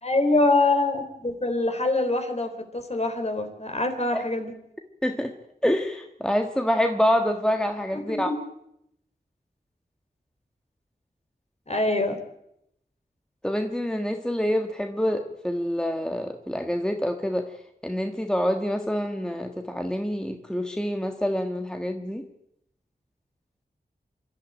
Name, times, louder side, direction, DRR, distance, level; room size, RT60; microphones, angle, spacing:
voice 1, 0.0-4.5 7.9-8.4 11.7-12.2, left 2 dB, 40° left, 6 dB, 3.5 m, -24 dB
voice 2, 5.0-5.3 5.6-8.3 13.4-17.4 17.8-22.2, equal, 5° left, 4 dB, 1.5 m, -26 dB
27.0 x 12.5 x 9.2 m, 0.78 s
wide cardioid pair, 85°, 17 cm